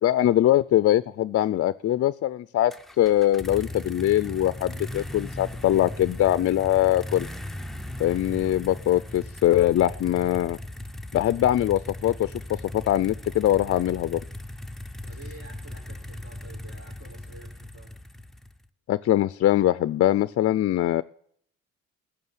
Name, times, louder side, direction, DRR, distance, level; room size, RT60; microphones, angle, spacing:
voice 1, 0.0-2.7 3.0-7.3 8.0-10.6 11.1-14.2 18.9-21.0, left 13 dB, 50° left, 15 dB, 0.5 m, -22 dB
sound 1, 2.7-18.7, left 1 dB, ahead, 0.7 m, -38 dB
voice 2, 15.0-17.9, right 2 dB, 45° right, -4 dB, 5.9 m, -48 dB
14.5 x 6.9 x 9.7 m, 0.65 s
cardioid pair, 90°, 30 cm